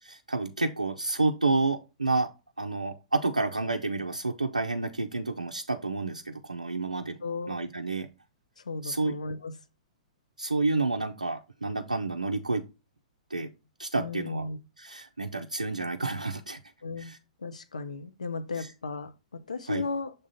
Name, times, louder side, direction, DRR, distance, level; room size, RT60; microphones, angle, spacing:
voice 1, 0.0-2.3 2.6-7.2 7.5-8.1 8.8-9.1 10.4-12.6 13.3-13.5 13.8-14.5 14.8-16.6 17.0-17.2 18.6-18.7 19.7-19.8, right 3 dB, 85° right, 0.5 m, -29 dB
voice 2, 7.2-7.6 8.6-9.5 13.9-14.6 16.8-17.1 17.4-20.1, left 3 dB, 75° left, 0.7 m, -35 dB
6.6 x 3.7 x 4.0 m
figure-of-eight pair, 110°, 4 cm